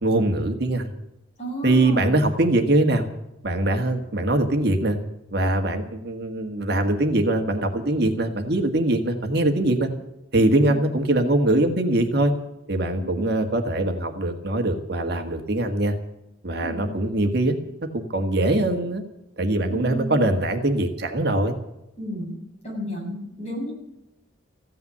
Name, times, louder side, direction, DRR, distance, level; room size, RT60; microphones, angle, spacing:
voice 1, 0.0-0.9 1.6-3.1 3.4-5.0 5.3-9.9 10.3-12.3 12.7-15.9 16.4-17.5 17.9-19.0 19.4-21.5, right 1 dB, 55° right, 5 dB, 1.6 m, -22 dB
voice 2, 1.4-2.2 10.3-10.7 13.0-13.3 16.6-16.8 19.7-20.1 22.0-22.4 22.6-23.7, equal, 35° left, -2 dB, 6.8 m, -33 dB
15.0 x 9.4 x 9.7 m, 0.88 s
head